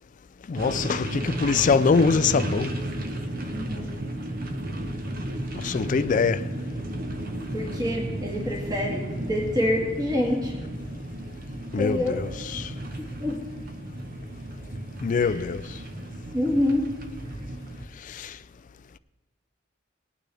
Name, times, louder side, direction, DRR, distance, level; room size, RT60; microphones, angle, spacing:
voice 1, 0.5-2.7 5.5-6.4 11.7-12.7 15.0-15.6 18.1-18.3, left 5 dB, 40° left, 0.3 m, -23 dB
sound 1, 0.6-17.9, right 1 dB, 45° right, 1.0 m, -34 dB
voice 2, 3.5-3.9 7.5-10.5 11.8-12.2 13.2-13.4 15.2-15.5 16.3-16.9, left 1 dB, 20° right, 1.8 m, -26 dB
19.5 x 9.1 x 3.4 m
head